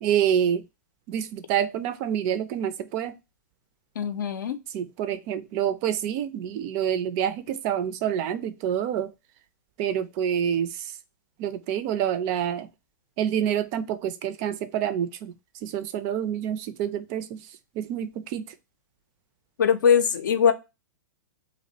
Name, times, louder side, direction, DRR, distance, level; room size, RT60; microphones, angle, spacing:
voice 1, 0.0-0.6 1.1-3.2 4.7-9.1 9.8-10.9 11.4-12.7 13.2-15.3 15.6-17.4 17.8-18.5, right 9 dB, 40° right, 0.4 m, -27 dB
voice 2, 4.0-4.6 19.6-20.5, left 7 dB, 75° left, 0.5 m, -21 dB
2.4 x 2.0 x 2.7 m
hypercardioid pair, 110°, 10 cm